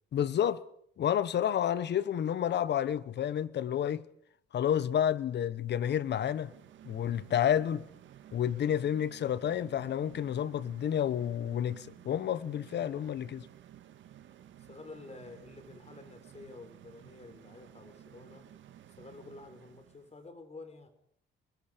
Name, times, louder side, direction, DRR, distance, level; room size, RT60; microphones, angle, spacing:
voice 1, 0.1-0.6 1.0-4.0 4.5-6.5 6.8-7.8 8.3-13.5, left 9 dB, 60° left, 1.1 m, -30 dB
sound 1, 5.6-20.2, right 11 dB, 70° right, 1.8 m, -54 dB
voice 2, 14.6-18.5 19.0-20.9, left 3 dB, 35° left, 4.3 m, -50 dB
30.0 x 21.0 x 5.2 m
cardioid pair, 90°, 20 cm